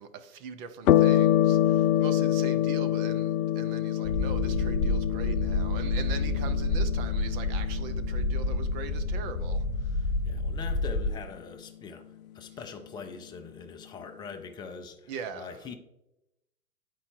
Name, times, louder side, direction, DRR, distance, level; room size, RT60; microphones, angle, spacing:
voice 1, 0.0-10.0 12.5-12.6 15.1-15.5, right 6 dB, 40° right, 1.0 m, -41 dB
sound 1, 0.9-9.7, left 12 dB, 75° left, 0.6 m, -26 dB
sound 2, 4.0-11.1, left 2 dB, 35° left, 1.0 m, -29 dB
voice 2, 9.8-12.0 12.3-15.7, left 5 dB, 10° left, 0.4 m, -43 dB
9.6 x 4.6 x 4.6 m
hypercardioid pair, 115°, 42 cm